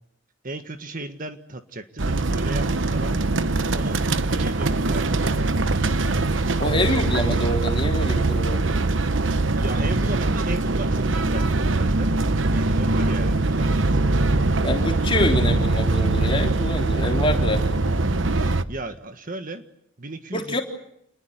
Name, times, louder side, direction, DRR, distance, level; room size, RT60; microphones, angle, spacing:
voice 1, 0.4-3.2 3.6-6.2 6.8-7.0 9.6-12.1 12.5-14.1 18.7-19.6 20.0-20.6, right 2 dB, 40° right, 8 dB, 1.6 m, -36 dB
sound 1, 2.0-18.6, right 2 dB, 65° right, 1.0 m, -22 dB
voice 2, 6.6-8.8 14.6-18.0 20.3-20.6, left 1 dB, 25° left, 2 dB, 3.7 m, -26 dB
28.5 x 20.5 x 9.5 m, 0.74 s
head